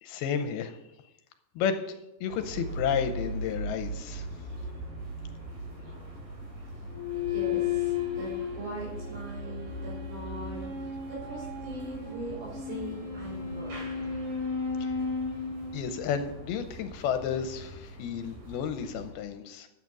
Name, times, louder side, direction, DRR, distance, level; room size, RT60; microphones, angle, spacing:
voice 1, 0.0-0.8 1.6-4.3 14.8-14.9 15.7-19.7, left 7 dB, 80° left, 8 dB, 2.6 m, -32 dB
sound 1, 2.3-19.1, right 1 dB, 55° right, 4.7 m, -41 dB
sound 2, 6.9-16.5, left 6 dB, 25° right, 4.0 m, -34 dB
voice 2, 7.1-14.1, right 2 dB, 85° right, -5 dB, 6.8 m, -41 dB
12.0 x 8.7 x 6.1 m, 0.91 s
omnidirectional pair, 4.7 m